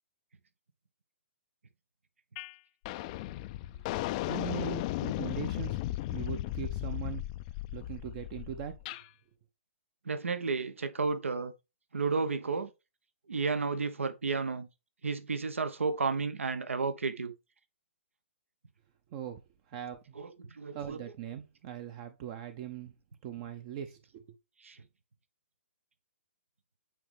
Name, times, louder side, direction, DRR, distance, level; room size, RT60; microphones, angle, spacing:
sound 1, 2.4-2.5 2.8-9.0, left 15 dB, 30° left, 0.4 m, -36 dB
voice 1, 4.3-5.8 6.1-7.2 7.7-9.0 19.1-19.4 19.7-20.0 20.7-22.9 23.2-24.3, right 10 dB, 35° right, 0.7 m, -40 dB
voice 2, 10.1-11.5 11.9-12.7 13.3-14.7 15.0-17.3 20.1-21.1 24.6-24.8, right 4 dB, 75° right, 0.9 m, -32 dB
8.9 x 4.2 x 3.3 m
figure-of-eight pair, 125°, 7 cm